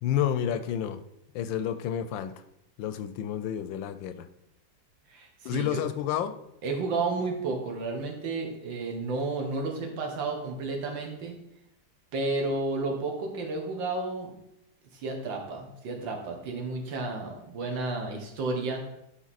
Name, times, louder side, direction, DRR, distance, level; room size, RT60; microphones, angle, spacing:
voice 1, 0.0-1.0 1.3-2.3 2.8-4.3 5.4-6.4, left 10 dB, 85° left, 11 dB, 1.3 m, -30 dB
voice 2, 5.1-5.8 6.6-11.4 12.1-14.3 14.9-18.8, right 3 dB, 75° right, 2 dB, 1.9 m, -32 dB
11.0 x 3.7 x 4.1 m, 0.80 s
omnidirectional pair, 2.0 m